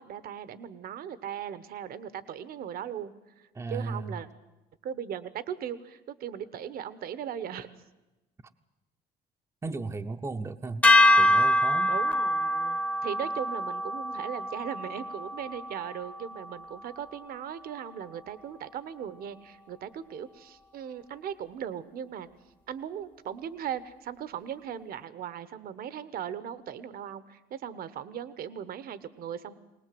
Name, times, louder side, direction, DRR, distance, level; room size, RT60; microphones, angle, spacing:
voice 1, 0.0-4.3 4.8-7.7 11.9-22.3 22.7-29.5, right 9 dB, 65° right, 14 dB, 1.1 m, -38 dB
voice 2, 3.5-4.2 9.6-10.8 11.1-12.0, right 3 dB, 15° right, 5 dB, 0.7 m, -35 dB
sound 1, 10.8-17.2, left 1 dB, 10° left, 0.9 m, -25 dB
21.5 x 19.0 x 7.7 m, 1.0 s
cardioid pair, 110°, 17 cm